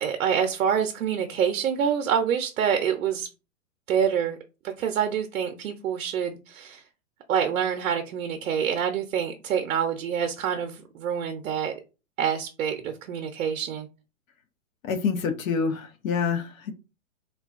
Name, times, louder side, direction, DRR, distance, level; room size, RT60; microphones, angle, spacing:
voice 1, 0.0-3.3 3.9-4.4 4.6-6.8 7.3-11.7 12.2-13.9, right 8 dB, 85° right, 0.6 m, -26 dB
voice 2, 14.8-16.5, left 5 dB, 80° left, 0.8 m, -26 dB
3.7 x 2.2 x 2.4 m
hypercardioid pair, 145°, 40 cm